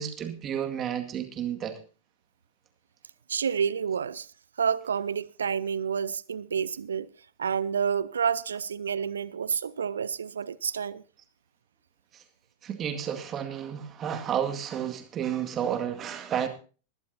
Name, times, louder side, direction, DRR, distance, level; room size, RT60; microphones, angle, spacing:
voice 1, 0.0-1.7 12.1-12.2 12.6-16.5, right 9 dB, 30° right, 2.0 m, -31 dB
voice 2, 3.3-4.3 4.6-7.1 7.4-11.0, right 7 dB, 70° right, 0.5 m, -29 dB
20.5 x 12.0 x 2.8 m
figure-of-eight pair, 90°, 0 cm